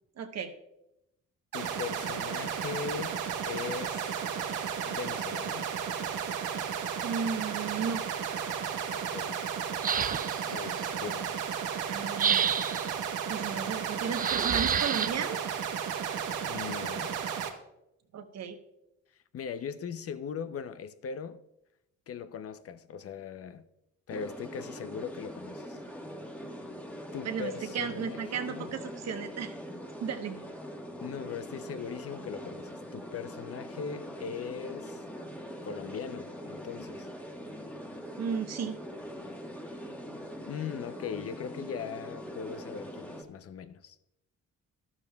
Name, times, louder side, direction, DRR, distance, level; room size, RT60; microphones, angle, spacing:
voice 1, 0.2-0.5 7.0-8.0 11.9-12.4 13.3-15.4 18.1-18.6 27.2-29.5 30.0-30.4 38.2-38.8, right 6 dB, 60° right, 1.1 m, -34 dB
voice 2, 1.5-3.2 3.5-4.1 4.9-5.7 8.9-9.4 10.5-11.4 16.4-17.1 19.3-21.4 22.1-23.6 24.1-25.8 27.1-28.7 31.0-35.0 35.6-37.1 40.5-44.0, left 7 dB, 50° left, 0.6 m, -39 dB
sound 1, 1.5-17.5, right 8 dB, 90° right, 1.1 m, -34 dB
sound 2, 9.8-10.5 12.2-12.9 14.1-15.1, right 7 dB, 30° right, 0.4 m, -28 dB
sound 3, 24.1-43.2, equal, 5° left, 1.4 m, -43 dB
12.0 x 12.0 x 2.3 m
cardioid pair, 90°, 30 cm